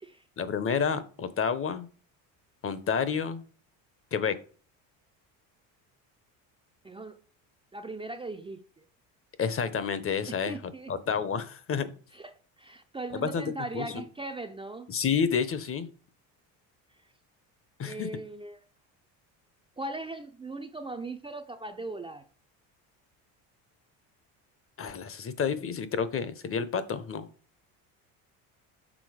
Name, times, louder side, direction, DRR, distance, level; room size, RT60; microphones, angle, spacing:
voice 1, 0.4-1.9 2.6-3.4 4.1-4.4 9.4-11.9 13.1-13.4 13.7-14.0 14.9-15.9 17.8-18.1 24.8-27.3, left 6 dB, 30° left, 0.8 m, -30 dB
voice 2, 6.8-7.2 7.7-8.8 10.3-10.9 12.1-14.9 17.9-18.6 19.8-22.3, right 2 dB, 15° right, 0.5 m, -39 dB
6.2 x 4.0 x 4.9 m
supercardioid pair, 95°, 41 cm